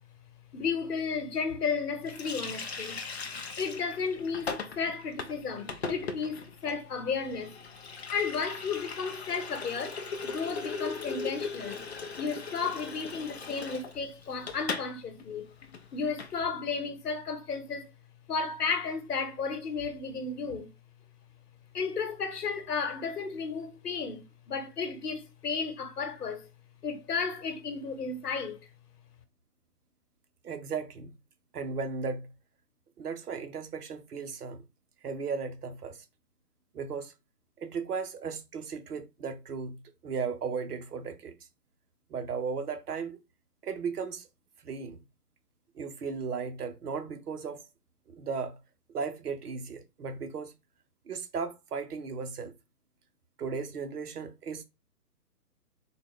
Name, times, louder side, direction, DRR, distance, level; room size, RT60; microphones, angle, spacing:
voice 1, 0.5-3.0 3.6-7.6 8.1-11.8 12.2-15.5 15.9-17.9 18.3-20.7 21.7-26.5 26.8-28.7, left 5 dB, 70° left, 1.1 m, -33 dB
Water tap faucet, 2.1-14.9 15.2-15.3 15.6-16.3, left 4 dB, 45° left, 0.4 m, -39 dB
voice 2, 30.4-31.1 31.5-32.3 33.0-34.6 35.0-36.0 36.7-37.1 37.6-41.4 42.1-43.2 43.6-44.3 44.6-45.0 45.7-47.6 48.1-48.6 48.9-50.5 51.1-52.5 53.4-54.6, right 5 dB, 70° right, 0.9 m, -36 dB
3.9 x 2.3 x 3.6 m
hypercardioid pair, 150°, 48 cm